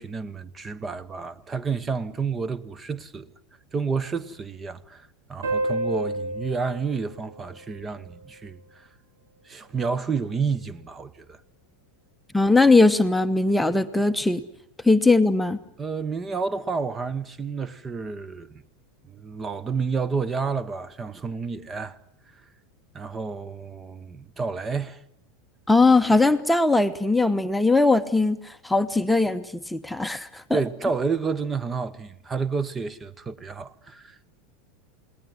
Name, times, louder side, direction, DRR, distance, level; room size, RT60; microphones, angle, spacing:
voice 1, 0.0-3.3 3.7-8.9 9.4-11.4 15.8-18.5 19.1-22.0 22.9-25.0 30.5-34.2, right 5 dB, 20° right, 1.2 m, -30 dB
sound 1, 5.4-8.6, right 1 dB, 70° right, 3.7 m, -31 dB
voice 2, 12.3-14.4 14.8-15.6 25.7-30.6, left 3 dB, 5° left, 1.1 m, -20 dB
29.5 x 19.0 x 9.7 m
figure-of-eight pair, 80°, 0 cm